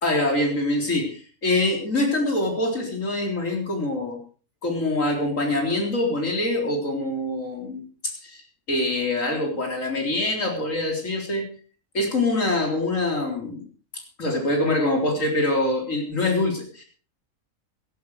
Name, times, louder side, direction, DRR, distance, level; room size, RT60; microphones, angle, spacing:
voice 1, 0.0-4.2 4.6-7.8 8.2-8.4 8.7-11.5 11.9-13.6 14.2-16.8, left 2 dB, 75° left, 2 dB, 4.2 m, -24 dB
17.0 x 12.0 x 4.8 m, 0.39 s
omnidirectional pair, 1.4 m